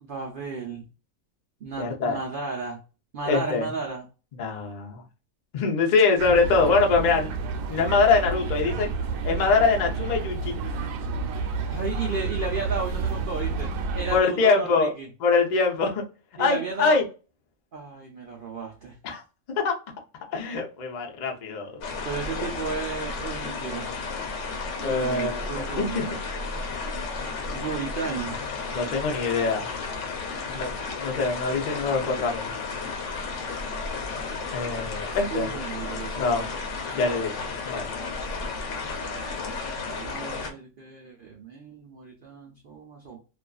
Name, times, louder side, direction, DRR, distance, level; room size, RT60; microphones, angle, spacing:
voice 1, 0.0-0.9 1.6-2.8 3.1-4.1 11.7-13.7 13.9-15.1 16.4-17.0 17.7-19.0 22.0-23.9 24.8-26.1 27.5-28.4 35.1-36.5 38.9-43.2, right 5 dB, 60° right, 0 dB, 0.5 m, -34 dB
voice 2, 1.8-2.2 3.3-3.7 4.4-5.0 5.5-7.3 7.7-8.9 9.2-10.5 14.1-14.9 15.2-16.0 16.4-17.0 19.0-19.2 19.5-19.8 20.3-21.8 24.8-26.1 28.7-29.7 30.5-32.5 34.5-35.5 36.2-36.4 36.9-37.3 37.7-37.9, left 4 dB, 50° left, 2 dB, 0.5 m, -23 dB
sound 1, 6.2-14.2, right 4 dB, 75° right, 1.0 m, -30 dB
sound 2, 21.8-40.5, left 4 dB, 65° left, 0.9 m, -33 dB
2.4 x 2.3 x 2.2 m, 0.33 s
omnidirectional pair, 1.4 m